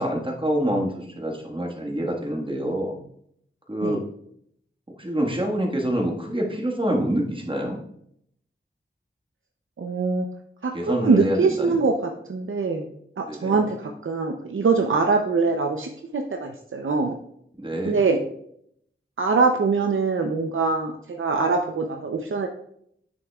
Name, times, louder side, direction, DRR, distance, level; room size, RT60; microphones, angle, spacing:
voice 1, 0.0-3.0 3.7-4.0 5.0-7.8 10.7-11.8 13.3-13.6 17.6-18.0, right 1 dB, 25° right, -1 dB, 1.5 m, -26 dB
voice 2, 9.8-10.3 10.6-12.9 13.2-17.1 17.9-18.2 19.2-22.5, right 4 dB, 75° right, 3 dB, 0.6 m, -23 dB
9.0 x 6.4 x 2.3 m, 0.69 s
wide cardioid pair, 65°, 21 cm